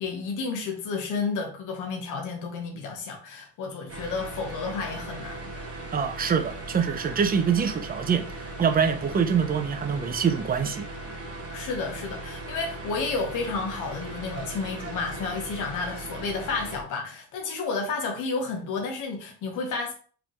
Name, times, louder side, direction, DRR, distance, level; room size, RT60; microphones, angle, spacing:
voice 1, 0.0-5.5 11.5-19.9, left 4 dB, 85° left, 1.1 m, -31 dB
sound 1, 3.9-16.8, right 2 dB, 50° right, 1.2 m, -38 dB
voice 2, 5.9-8.3 8.6-10.9, right 6 dB, 30° right, 0.6 m, -24 dB
4.9 x 3.6 x 3.0 m
cardioid pair, 90°, 30 cm